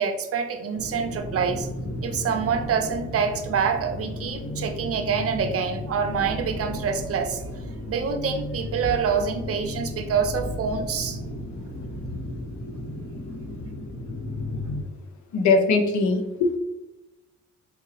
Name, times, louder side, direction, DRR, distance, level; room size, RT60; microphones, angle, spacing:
voice 1, 0.0-1.7 2.0-7.4 7.9-11.2, right 6 dB, 50° right, 7 dB, 0.6 m, -26 dB
sound 1, 0.7-14.8, left 1 dB, 30° left, 1.5 m, -34 dB
voice 2, 15.3-16.6, left 3 dB, 70° left, 5 dB, 0.8 m, -21 dB
4.5 x 2.9 x 2.8 m, 0.96 s
cardioid pair, 90°, 30 cm